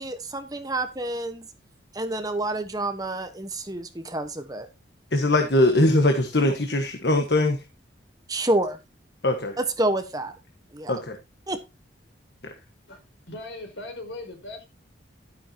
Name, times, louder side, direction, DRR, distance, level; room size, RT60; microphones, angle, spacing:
voice 1, 0.0-1.5 1.9-4.7 8.3-8.8 9.6-10.3 10.7-10.9 11.5-11.6, right 2 dB, 20° right, 1.2 m, -28 dB
voice 2, 5.1-7.6 9.2-9.6 10.9-11.2, left 1 dB, 60° left, 1.5 m, -21 dB
voice 3, 13.3-14.6, left 2 dB, 75° left, 4.6 m, -38 dB
12.5 x 9.5 x 2.9 m
head